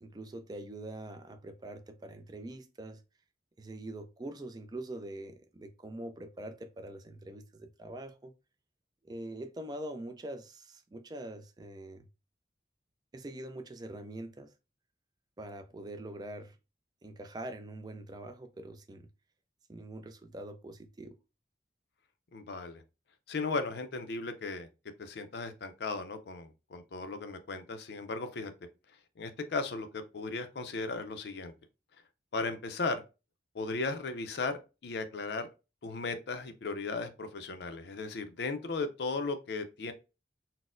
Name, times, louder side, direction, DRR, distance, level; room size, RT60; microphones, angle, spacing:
voice 1, 0.0-3.0 3.6-8.3 9.0-12.1 13.1-14.5 15.4-16.6 17.0-19.1 19.7-21.2, right 1 dB, 20° right, 0.3 m, -44 dB
voice 2, 22.3-22.8 23.3-24.7 25.0-28.5 29.2-31.5 32.3-33.0 33.5-34.5 34.8-35.5 35.8-39.9, left 3 dB, 65° left, 0.4 m, -36 dB
4.1 x 2.0 x 2.4 m
head